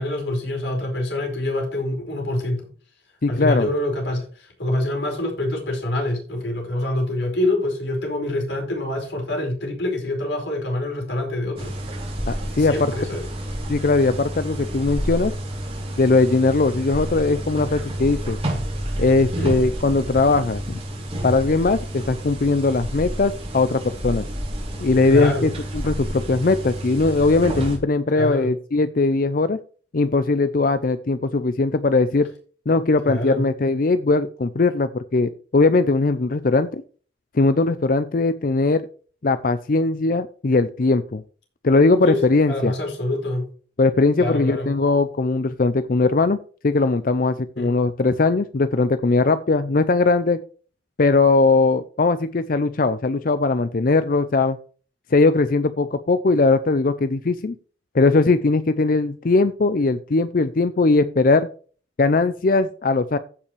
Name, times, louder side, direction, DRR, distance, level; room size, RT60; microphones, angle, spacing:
voice 1, 0.0-2.7 3.3-11.7 12.6-13.2 19.4-19.5 25.0-25.5 28.1-28.5 33.0-33.4 42.0-43.5 44.2-44.7 47.6-47.7, left 1 dB, 80° left, 1 dB, 4.8 m, -25 dB
voice 2, 3.2-3.7 12.3-12.9 13.7-15.3 16.0-18.4 19.0-20.8 21.2-24.2 24.8-29.6 29.9-32.3 32.7-36.8 37.3-38.8 39.2-41.2 41.6-42.7 43.8-46.4 46.6-50.4 51.0-54.6 55.1-57.6 57.9-61.5 62.0-63.2, left 3 dB, 50° left, 12 dB, 0.5 m, -19 dB
sound 1, 11.6-27.8, right 1 dB, 30° right, 3.2 m, -30 dB
15.5 x 5.7 x 3.2 m, 0.40 s
head